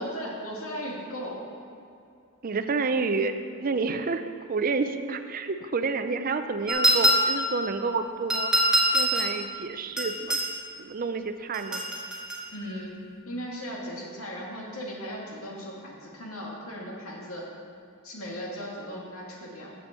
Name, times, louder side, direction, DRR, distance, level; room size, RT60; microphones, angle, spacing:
voice 1, 0.0-1.5 12.5-17.5 18.0-19.7, equal, 80° left, -2 dB, 2.1 m, -37 dB
voice 2, 2.4-10.4 10.8-11.8, right 4 dB, 40° right, 9 dB, 0.5 m, -29 dB
sound 1, 6.7-7.5 8.3-9.4 10.0-10.5 11.5-12.4, equal, 5° right, 1.6 m, -24 dB
7.7 x 7.2 x 6.5 m, 2.6 s
head